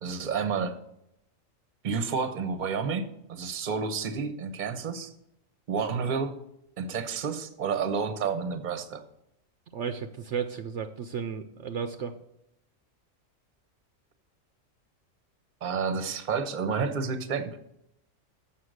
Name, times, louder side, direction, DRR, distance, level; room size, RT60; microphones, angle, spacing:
voice 1, 0.0-0.8 1.8-5.1 5.7-6.4 6.8-9.0 15.6-17.6, right 5 dB, 40° right, 9 dB, 0.9 m, -30 dB
voice 2, 9.7-12.1, right 6 dB, 70° right, 7 dB, 0.9 m, -33 dB
7.4 x 5.9 x 6.4 m, 0.81 s
omnidirectional pair, 1.4 m